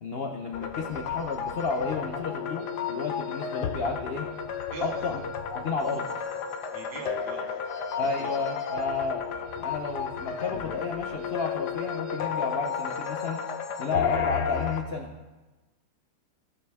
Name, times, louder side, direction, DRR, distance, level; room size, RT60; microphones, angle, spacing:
voice 1, 0.0-4.3 4.8-5.2 5.5-6.0 8.0-13.4 13.8-15.1, left 4 dB, 85° left, 3 dB, 0.5 m, -32 dB
sound 1, 0.5-14.8, left 6 dB, 65° left, 1.2 m, -32 dB
voice 2, 6.7-7.5 8.0-8.5, right 4 dB, 70° right, 0 dB, 2.1 m, -40 dB
17.5 x 5.9 x 3.5 m, 1.2 s
omnidirectional pair, 2.1 m